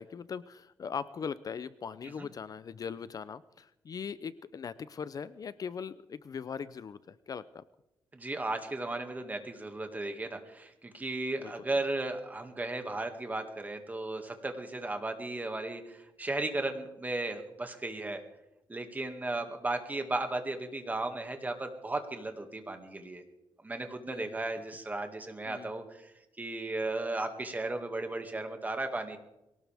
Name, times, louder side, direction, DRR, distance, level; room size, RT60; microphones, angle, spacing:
voice 1, 0.0-7.6 11.4-11.5 24.1-24.4 25.5-25.8, left 6 dB, 45° left, 15 dB, 0.5 m, -40 dB
voice 2, 8.1-18.2 18.7-23.2 23.6-26.1 26.4-29.2, right 2 dB, 20° right, 5 dB, 2.1 m, -35 dB
22.5 x 18.0 x 3.5 m, 0.95 s
cardioid pair, 120°, 8 cm